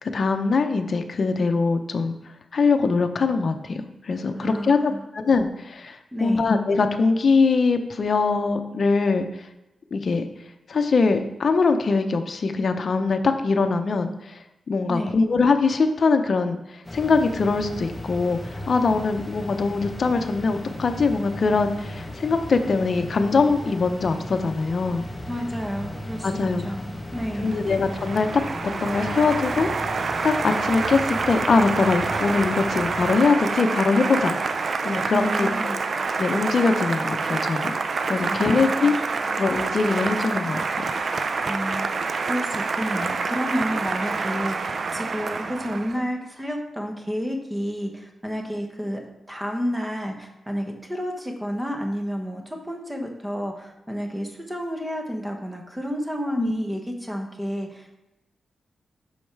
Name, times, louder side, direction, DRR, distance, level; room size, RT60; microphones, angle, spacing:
voice 1, 0.0-2.1 2.5-9.5 9.9-10.2 10.7-14.4 14.7-25.1 26.2-26.6 27.4-29.7 30.2-35.8 36.2-37.7 38.0-38.9 39.3-40.8 56.4-56.5, left 4 dB, 50° left, 7 dB, 0.7 m, -22 dB
voice 2, 4.4-5.0 6.1-6.5 14.9-15.2 25.3-27.6 35.1-35.8 38.2-38.9 41.4-49.0 49.3-58.0, equal, 10° right, 2 dB, 1.1 m, -30 dB
sound 1, 16.8-33.2, left 1 dB, 10° left, 0.9 m, -36 dB
Applause, 27.1-46.0, right 4 dB, 50° right, 0.4 m, -27 dB
6.4 x 5.2 x 4.7 m, 0.95 s
wide cardioid pair, 105°, 0 cm